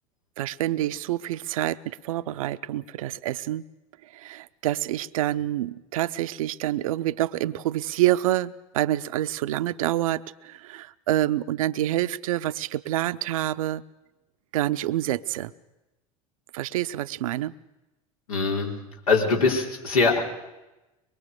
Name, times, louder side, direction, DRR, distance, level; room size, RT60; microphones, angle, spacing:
voice 1, 0.4-3.6 4.0-13.8 14.5-15.5 16.5-17.5, right 14 dB, 70° right, 14 dB, 0.7 m, -27 dB
voice 2, 18.3-18.8 19.1-20.2, left 4 dB, 80° left, 0 dB, 4.5 m, -22 dB
23.5 x 22.0 x 6.8 m, 1.0 s
figure-of-eight pair, 75°, 18 cm